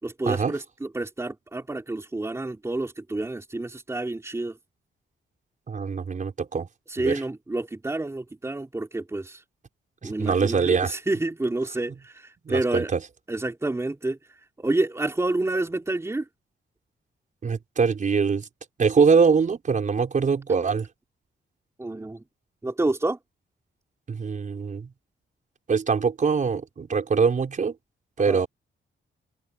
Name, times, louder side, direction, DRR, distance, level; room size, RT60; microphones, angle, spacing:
voice 1, 0.0-4.6 6.9-9.4 10.0-12.9 13.3-14.2 14.6-16.2 21.8-22.2 22.6-23.2 28.3-28.4, right 2 dB, 15° right, 3.4 m, -29 dB
voice 2, 5.7-6.7 7.0-7.2 10.0-10.9 12.5-13.0 17.4-18.5 18.8-20.9 24.1-24.9 25.7-27.7 28.2-28.5, right 5 dB, 40° right, 5.6 m, -23 dB
open air
wide cardioid pair, 155°, 20 cm